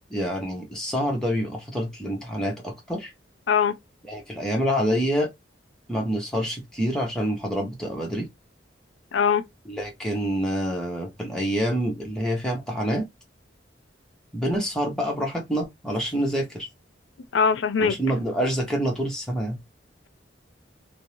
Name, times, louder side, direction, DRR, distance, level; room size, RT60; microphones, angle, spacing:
voice 1, 0.1-3.1 4.1-5.3 5.9-8.3 9.7-13.1 14.3-16.7 17.8-19.6, equal, 5° left, 0.9 m, -27 dB
voice 2, 9.1-9.4 17.3-17.9, left 6 dB, 90° left, 0.4 m, -21 dB
2.6 x 2.1 x 2.9 m
head